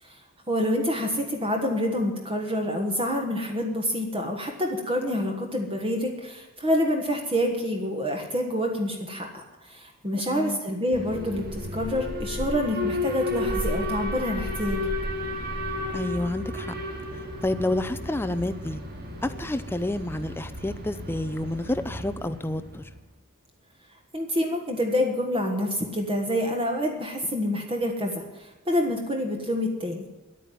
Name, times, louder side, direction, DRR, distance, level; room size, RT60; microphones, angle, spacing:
voice 1, 0.5-14.8 24.1-30.1, left 1 dB, 25° right, 2 dB, 1.5 m, -27 dB
voice 2, 10.2-10.6 15.9-16.7 17.1-18.8 19.2-22.9, left 1 dB, 10° left, 10 dB, 0.6 m, -29 dB
Alarm, 10.9-22.9, left 1 dB, 45° right, 2.2 m, -33 dB
10.5 x 9.3 x 9.4 m, 1.1 s
head